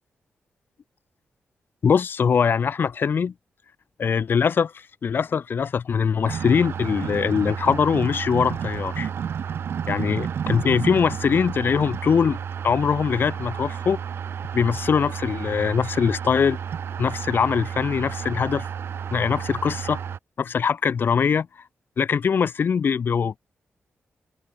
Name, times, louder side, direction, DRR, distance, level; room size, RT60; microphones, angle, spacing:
voice 1, 1.8-3.3 4.0-9.1 9.9-12.4 12.6-14.0 14.5-16.6 17.0-18.6 19.1-20.0 20.4-21.5 22.0-23.4, left 6 dB, 55° left, 1.2 m, -22 dB
sound 1, 6.2-20.2, right 8 dB, 70° right, 3.4 m, -31 dB
cardioid pair, 100°, 4 cm